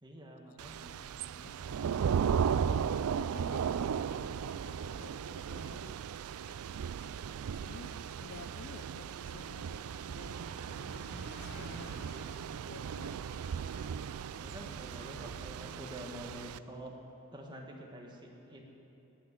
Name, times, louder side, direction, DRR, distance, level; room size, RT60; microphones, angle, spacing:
voice 1, 0.0-2.4 4.9-5.2 14.4-16.9 17.3-18.6, right 1 dB, 20° right, 1 dB, 1.4 m, -48 dB
Thunder / Rain, 0.6-16.6, right 7 dB, 75° right, 0.3 m, -36 dB
voice 2, 3.1-3.7 4.3-6.0 7.5-10.4 11.3-12.1 12.7-13.2, left 4 dB, 75° left, 11 dB, 0.6 m, -52 dB
Engine, 7.0-15.6, equal, 50° left, 2.9 m, -54 dB
17.5 x 6.3 x 9.4 m, 3.0 s
head